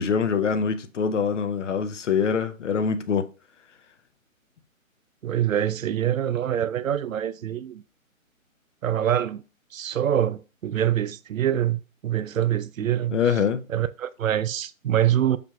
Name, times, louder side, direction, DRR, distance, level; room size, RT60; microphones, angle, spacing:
voice 1, 0.0-3.3 13.1-13.6, left 6 dB, 60° left, 0.6 m, -24 dB
voice 2, 5.2-7.8 8.8-9.4 9.7-13.3 13.7-15.4, right 10 dB, 75° right, 0.5 m, -25 dB
5.1 x 4.6 x 2.3 m
hypercardioid pair, 155°, 41 cm